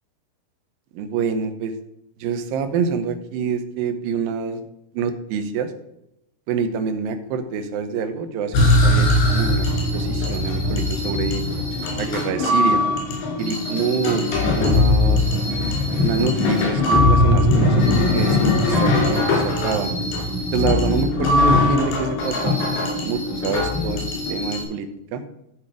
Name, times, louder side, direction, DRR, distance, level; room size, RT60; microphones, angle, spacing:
voice 1, 1.0-1.7 2.2-4.7 4.9-5.7 6.5-9.7 9.9-11.4 12.0-12.8 13.4-14.3 14.6-15.3 16.0-18.4 18.7-19.9 20.5-25.2, right 5 dB, 75° right, 7 dB, 2.4 m, -26 dB
sound 1, 8.5-24.6, left 2 dB, 80° left, 4.8 m, -20 dB
12.5 x 5.1 x 4.9 m, 0.81 s
omnidirectional pair, 4.6 m